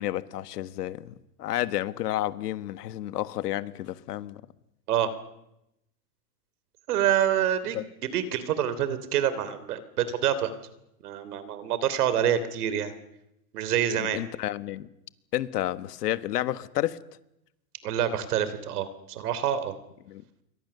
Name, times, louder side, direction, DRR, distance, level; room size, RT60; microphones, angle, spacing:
voice 1, 0.0-4.4 7.7-7.8 14.0-14.9 15.3-17.0 20.1-20.2, left 14 dB, 85° left, 1.5 m, -31 dB
voice 2, 6.9-7.8 8.1-10.5 11.0-12.9 13.5-14.2 17.8-19.7, right 10 dB, 75° right, 3.2 m, -26 dB
28.0 x 23.5 x 6.9 m
supercardioid pair, 170°, 46 cm